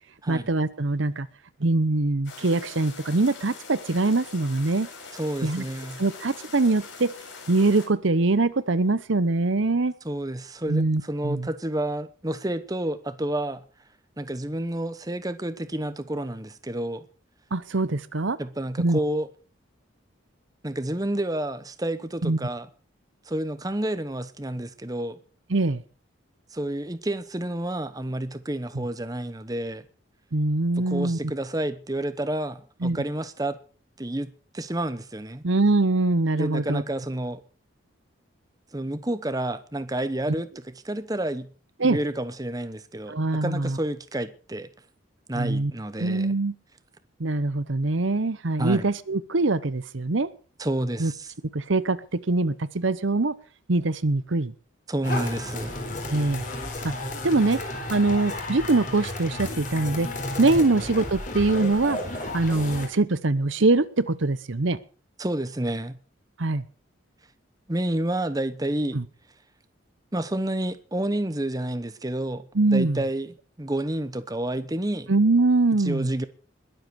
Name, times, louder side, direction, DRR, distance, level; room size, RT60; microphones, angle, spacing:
voice 1, 0.3-1.3 1.6-4.9 5.4-5.6 6.0-7.1 7.5-9.9 10.7-11.5 17.5-18.4 18.8-19.0 22.2-22.4 25.5-25.8 28.7-28.8 30.3-31.2 32.8-33.0 35.4-36.8 41.8-42.0 43.1-43.8 45.3-45.7 46.0-46.5 47.2-50.3 51.0-51.1 51.5-53.3 53.7-54.5 56.1-56.4 56.8-56.9 57.2-60.1 60.4-62.0 62.3-64.8 66.4-66.7 68.9-69.0 72.5-73.0 75.1-76.1, right 2 dB, 65° right, 0.9 m, -23 dB
sound 1, 2.2-7.9, left 4 dB, 60° left, 6.6 m, -43 dB
voice 2, 5.1-6.0 10.0-13.6 14.2-17.1 18.4-19.3 20.6-22.7 23.3-25.2 26.5-29.8 30.8-33.6 34.0-35.4 36.3-37.4 38.7-41.5 41.8-44.7 45.3-46.3 48.6-48.9 50.6-51.3 54.9-55.8 60.5-60.7 65.2-66.0 67.7-69.0 70.1-72.5 72.7-73.3 73.6-75.1 75.8-76.3, right 1 dB, 20° right, 0.9 m, -30 dB
sound 2, 55.0-62.9, left 1 dB, 40° left, 4.0 m, -33 dB
21.0 x 8.0 x 6.3 m
head